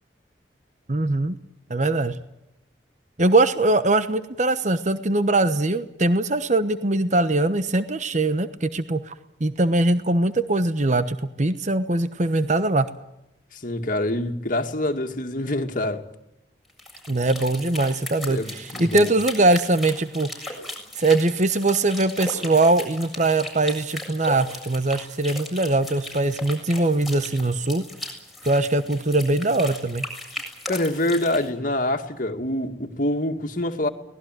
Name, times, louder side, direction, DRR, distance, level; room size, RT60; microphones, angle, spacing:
voice 1, 0.9-1.4 1.7-2.2 3.2-9.1 9.4-12.9 17.1-20.3 21.0-27.8 28.4-30.1, right 2 dB, 40° right, 1.1 m, -21 dB
voice 2, 13.5-16.0 18.3-19.1 30.7-33.9, left 1 dB, 50° left, 2.2 m, -26 dB
sound 1, 16.7-31.5, left 1 dB, ahead, 7.4 m, -37 dB
24.5 x 19.0 x 9.2 m
head